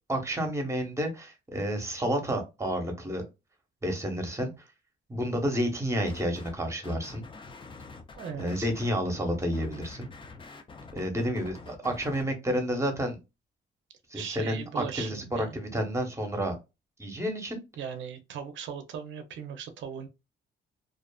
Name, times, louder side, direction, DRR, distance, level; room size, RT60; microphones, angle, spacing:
voice 1, 0.1-3.2 3.8-4.5 5.1-7.2 8.4-10.1 10.9-13.2 14.1-16.6 17.0-17.6, equal, 15° right, 0.9 m, -30 dB
sound 1, 6.1-6.6 6.8-12.2, left 3 dB, 25° left, 0.5 m, -46 dB
voice 2, 8.2-8.7 11.8-11.9 14.1-15.6 17.8-20.1, right 7 dB, 70° right, 0.5 m, -39 dB
2.5 x 2.4 x 2.2 m
cardioid pair, 90°, 20 cm